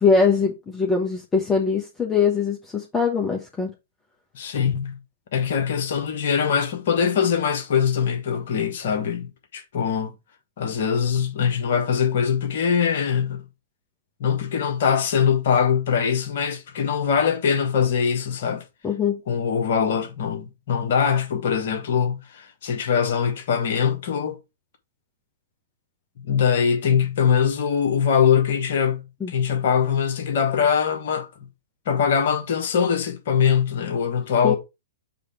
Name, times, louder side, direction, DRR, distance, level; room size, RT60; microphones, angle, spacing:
voice 1, 0.0-3.7 18.8-19.2 29.2-29.3 34.4-34.6, left 5 dB, 10° left, 1.2 m, -22 dB
voice 2, 4.3-5.0 5.3-10.1 10.6-13.4 14.2-18.6 19.3-24.4 26.2-31.3 31.9-34.6, left 7 dB, 55° left, 1.3 m, -22 dB
6.9 x 3.3 x 4.6 m
figure-of-eight pair, 110°, 0 cm